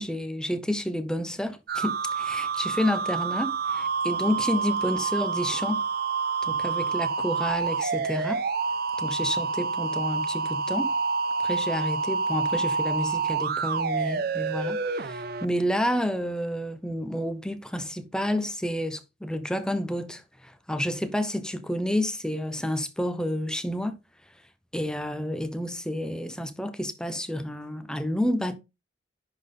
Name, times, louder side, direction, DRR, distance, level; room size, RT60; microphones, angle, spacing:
voice 1, 0.0-5.8 6.4-8.4 9.0-10.9 11.4-23.9 24.7-28.5, equal, 5° left, 0.8 m, -30 dB
sound 1, 1.7-15.4, right 5 dB, 60° right, 0.7 m, -28 dB
11.0 x 4.0 x 3.7 m
head